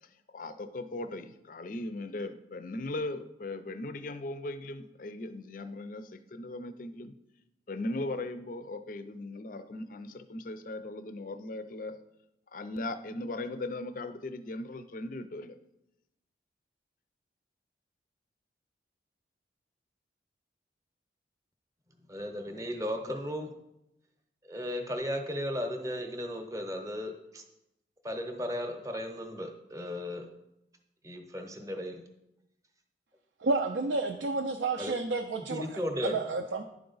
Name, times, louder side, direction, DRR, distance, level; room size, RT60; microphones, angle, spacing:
voice 1, 0.3-7.1 7.7-12.0 12.5-15.6, left 2 dB, 45° left, 11 dB, 0.4 m, -38 dB
voice 2, 22.1-23.5 24.4-27.4 28.0-30.3 31.0-32.0 34.8-34.9 35.5-36.3, equal, 15° right, 5 dB, 0.7 m, -35 dB
voice 3, 33.4-35.7 36.0-36.6, right 3 dB, 75° right, 4 dB, 0.4 m, -30 dB
11.0 x 4.7 x 3.9 m, 0.88 s
head